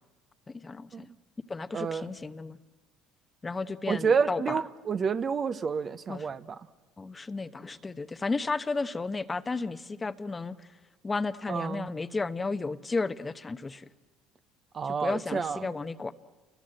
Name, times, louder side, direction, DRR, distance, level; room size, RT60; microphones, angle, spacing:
voice 1, 0.5-1.1 1.5-2.6 3.4-4.6 6.1-6.3 7.0-10.7 11.0-13.9 14.8-16.1, left 3 dB, 20° left, 12 dB, 1.0 m, -33 dB
voice 2, 1.7-2.1 3.9-6.4 11.5-11.9 14.7-15.7, right 6 dB, 40° right, 12 dB, 0.9 m, -29 dB
29.0 x 21.5 x 7.7 m, 1.3 s
supercardioid pair, 80°, 0 cm